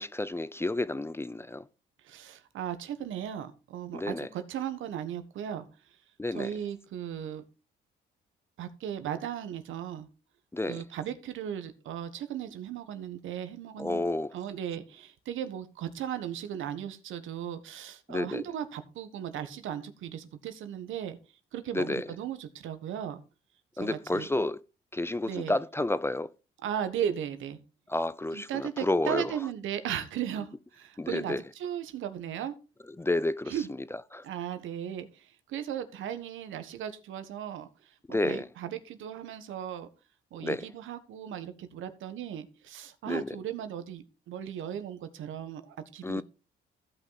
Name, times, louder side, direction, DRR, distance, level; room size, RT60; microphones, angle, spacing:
voice 1, 0.0-1.7 3.9-4.3 6.2-6.5 10.5-10.8 13.8-14.3 18.1-18.4 21.7-22.1 23.8-24.6 24.9-26.3 27.9-29.3 31.0-31.4 33.0-33.5 33.9-34.2 38.1-38.5 40.4-40.6 43.1-43.4 46.0-46.2, left 2 dB, 10° left, 0.5 m, -30 dB
voice 2, 2.0-5.7 6.3-7.4 8.6-10.1 10.7-14.0 14.3-21.2 21.5-23.2 23.7-24.3 25.3-25.5 26.6-27.6 28.3-32.5 33.5-33.7 34.2-39.9 40.3-46.2, right 9 dB, 80° right, 1.3 m, -36 dB
15.5 x 5.6 x 4.0 m
cardioid pair, 90°, 20 cm